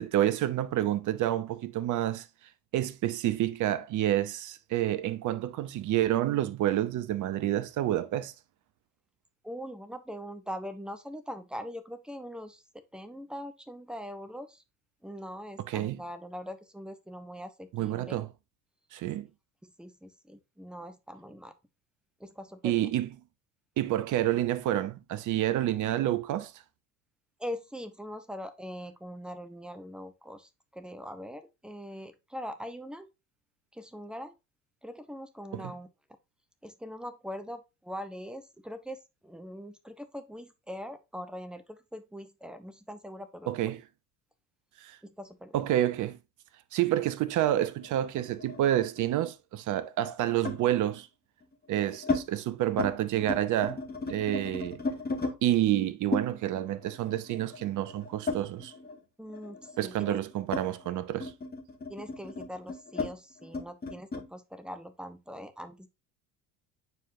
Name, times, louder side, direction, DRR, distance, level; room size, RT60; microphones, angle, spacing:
voice 1, 0.0-2.3 2.7-8.3 15.7-16.0 17.7-18.3 18.9-19.3 22.6-23.1 23.8-26.5 35.5-35.7 43.5-43.8 44.8-45.0 45.5-46.2 46.7-51.1 51.7-53.8 54.1-54.8 55.4-58.7 59.8-61.3, right 13 dB, 40° right, 0.8 m, -28 dB
voice 2, 9.4-12.6 12.9-14.6 15.0-18.2 19.6-21.5 22.2-22.9 27.4-33.1 33.7-34.3 34.8-35.9 36.6-43.5 45.0-45.5 59.2-60.2 61.9-65.9, equal, ahead, 1.0 m, -42 dB
sound 1, 47.6-49.2 50.4-50.7 51.4-52.2 52.6-52.9 53.2-55.4 56.1-59.0 59.3-64.3, left 3 dB, 20° left, 2.3 m, -35 dB
9.3 x 4.6 x 2.7 m
figure-of-eight pair, 65°, 48 cm